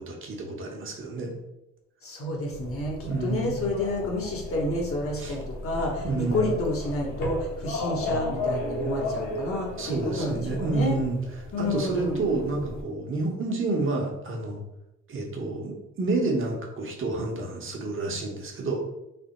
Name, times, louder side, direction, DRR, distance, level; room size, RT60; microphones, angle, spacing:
voice 1, 0.0-1.3 3.1-3.6 5.2-5.4 6.0-6.5 9.8-14.6 15.1-18.8, right 3 dB, 45° right, 0 dB, 0.9 m, -29 dB
voice 2, 2.0-11.0 11.5-12.2, left 2 dB, 45° left, -1 dB, 1.0 m, -30 dB
sound 1, 2.5-12.8, left 1 dB, 65° left, 1.3 m, -35 dB
3.4 x 2.0 x 4.0 m, 0.89 s
cardioid pair, 90°, 30 cm